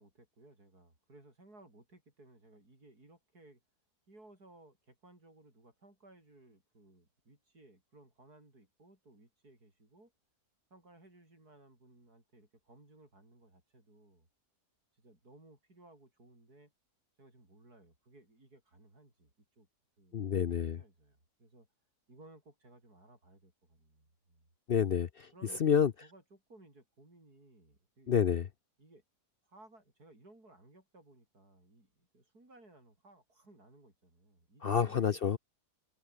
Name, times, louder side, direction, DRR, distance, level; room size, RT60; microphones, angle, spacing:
voice 1, 0.0-3.6 4.1-10.1 10.7-14.3 14.9-16.7 17.2-19.3 19.6-19.7 20.0-21.7 22.1-24.5 25.3-28.1 28.8-29.0 29.4-35.2, right 2 dB, 65° right, 8.6 m, -60 dB
voice 2, 20.1-20.8 24.7-25.1 25.6-25.9 28.1-28.5 34.6-35.4, left 7 dB, 60° left, 0.6 m, -28 dB
omnidirectional pair, 1.7 m